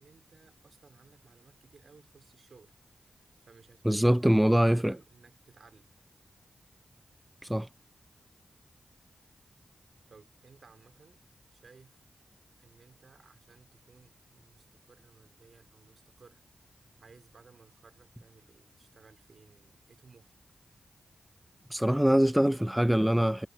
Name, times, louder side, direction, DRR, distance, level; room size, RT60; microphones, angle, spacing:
voice 1, 0.0-2.8 3.0-5.9 10.1-11.2 11.5-12.0 12.6-16.4 17.0-20.3, right 4 dB, 65° right, 3.0 m, -58 dB
voice 2, 3.8-4.9 7.4-7.7 21.7-23.5, equal, 5° right, 0.3 m, -23 dB
cardioid pair, 50°, 0 cm